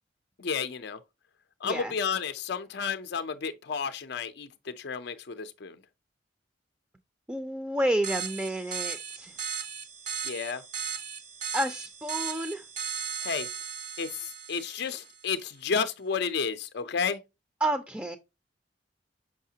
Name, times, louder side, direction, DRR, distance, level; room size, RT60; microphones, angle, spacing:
voice 1, 0.4-1.0 1.6-5.8 10.2-10.6 13.2-13.5 14.0-17.2, left 6 dB, 60° left, 0.5 m, -32 dB
voice 2, 1.6-1.9 7.3-9.4 11.5-12.6 17.6-18.2, right 1 dB, 10° right, 0.5 m, -30 dB
sound 1, 8.0-15.2, right 6 dB, 40° right, 0.7 m, -37 dB
6.4 x 5.6 x 2.7 m
head